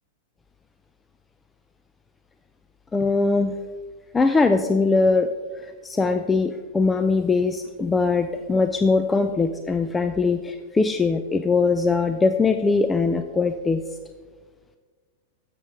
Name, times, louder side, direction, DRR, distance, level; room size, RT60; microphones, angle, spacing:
voice 1, 2.9-3.6 4.1-5.3 5.6-13.8, left 4 dB, 15° left, 8 dB, 0.5 m, -21 dB
15.5 x 6.7 x 3.6 m, 1.5 s
hypercardioid pair, 100°, 0 cm